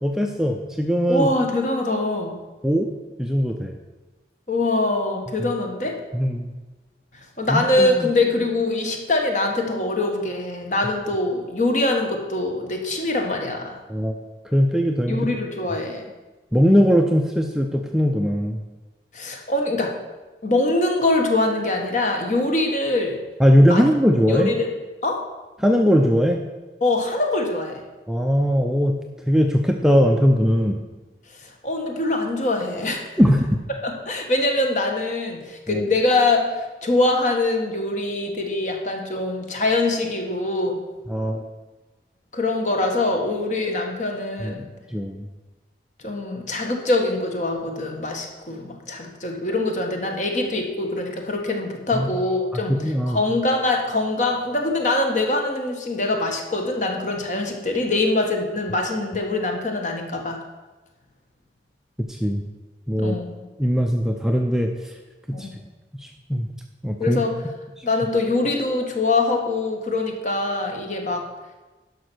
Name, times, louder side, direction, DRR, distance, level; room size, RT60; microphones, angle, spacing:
voice 1, 0.0-1.3 2.6-2.9 3.2-3.7 5.4-5.5 6.1-6.5 7.5-8.1 13.9-14.1 14.5-15.3 16.5-18.6 23.4-24.5 25.6-26.4 28.1-29.0 29.3-30.8 33.2-33.4 35.7-35.9 41.1-41.4 44.4-44.5 44.9-45.3 51.9-52.1 52.5-53.2 62.1-62.4 62.9-63.2 63.6-64.9 65.4-65.5 66.0-66.5 66.8-67.2 67.8-67.9, equal, 5° right, 3 dB, 0.5 m, -20 dB
voice 2, 1.1-2.4 4.5-6.0 7.4-13.8 15.1-16.0 19.1-20.0 20.4-23.2 23.7-23.8 24.3-24.7 25.0-25.2 26.8-27.8 31.4-33.2 33.8-40.8 42.3-44.7 46.0-52.8 53.1-60.4 63.0-63.3 65.3-65.6 67.0-67.3 67.8-71.2, left 2 dB, 45° left, 2 dB, 1.4 m, -23 dB
11.5 x 5.6 x 6.2 m, 1.2 s
head